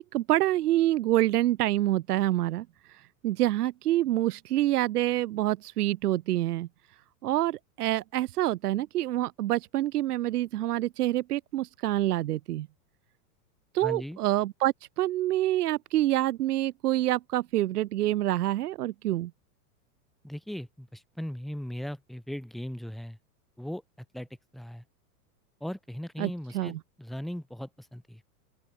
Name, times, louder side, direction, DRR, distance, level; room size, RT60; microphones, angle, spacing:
voice 1, 0.0-6.7 7.2-12.7 13.7-19.3 26.2-26.8, right 14 dB, 75° right, 1.3 m, -27 dB
voice 2, 13.8-14.2 20.2-23.2 23.6-23.8 24.1-24.3 24.5-24.8 25.6-28.2, equal, ahead, 0.9 m, -38 dB
open air
supercardioid pair, 150°, 46 cm